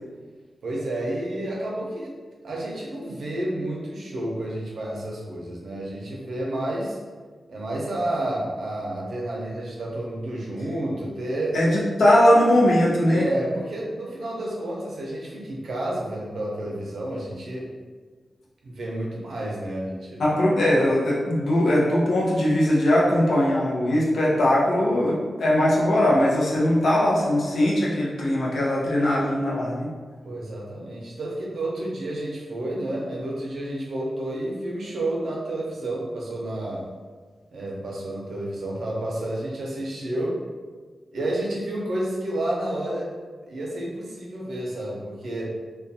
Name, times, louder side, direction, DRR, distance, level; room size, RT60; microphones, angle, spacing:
voice 1, 0.6-2.2 2.4-7.0 7.5-11.6 13.1-17.7 18.6-20.2 30.2-36.9 37.5-40.4 41.1-43.1 43.5-45.5, right 1 dB, 75° right, -3 dB, 0.6 m, -30 dB
voice 2, 11.5-13.3 20.2-29.9, left 1 dB, 80° left, -5 dB, 0.6 m, -20 dB
2.4 x 2.2 x 2.7 m, 1.5 s
wide cardioid pair, 140°, 0 cm